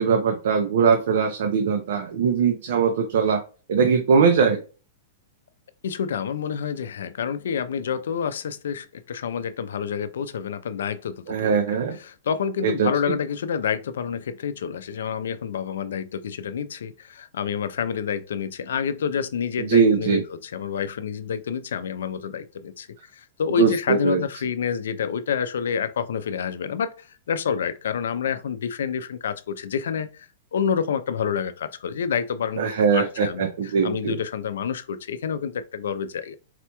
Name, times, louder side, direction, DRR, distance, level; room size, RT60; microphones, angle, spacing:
voice 1, 0.0-3.4 3.7-4.6 11.3-12.0 12.6-12.9 19.7-20.2 23.6-24.2 32.6-34.2, right 6 dB, 65° right, 0.5 m, -21 dB
voice 2, 5.8-22.9 23.1-30.3 30.5-36.4, left 7 dB, 85° left, 0.4 m, -28 dB
4.1 x 2.2 x 2.9 m
supercardioid pair, 170°, 0 cm